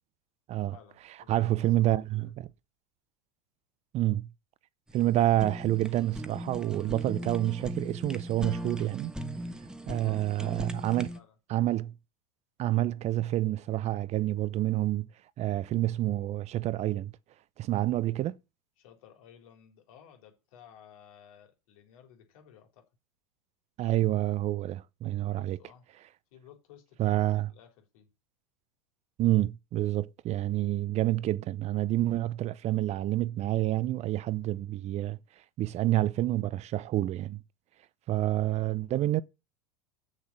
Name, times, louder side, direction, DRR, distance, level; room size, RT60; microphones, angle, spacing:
voice 1, 0.7-1.5 1.8-2.3 9.9-10.3 10.6-11.3 18.8-22.9 25.4-25.9 26.3-28.1, left 9 dB, 70° left, 3.8 m, -56 dB
voice 2, 1.3-2.3 3.9-4.3 4.9-9.1 9.9-11.1 11.5-11.9 12.6-15.1 15.4-17.1 17.6-18.4 23.8-25.6 27.0-27.5 29.2-35.2 35.6-37.4 38.1-39.2, right 14 dB, 40° right, 0.6 m, -28 dB
Fire, 4.9-11.2, right 1 dB, 5° right, 1.2 m, -38 dB
8.1 x 6.6 x 7.4 m
hypercardioid pair, 100°, 18 cm